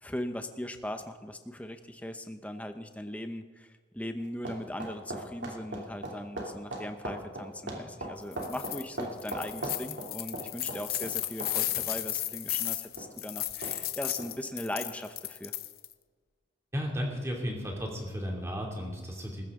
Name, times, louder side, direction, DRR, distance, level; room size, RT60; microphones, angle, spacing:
voice 1, 0.0-15.5, left 1 dB, 5° left, 7 dB, 0.8 m, -39 dB
sound 1, 4.2-11.9 12.2-12.4 13.0-13.1 13.6-13.8 14.2-14.3, right 1 dB, 65° right, 2.9 m, -38 dB
sound 2, 8.3-8.8 9.2-15.9, left 14 dB, 50° left, 0.7 m, -34 dB
voice 2, 16.7-19.4, equal, 15° right, -1 dB, 2.7 m, -34 dB
19.0 x 15.0 x 3.8 m, 1.5 s
head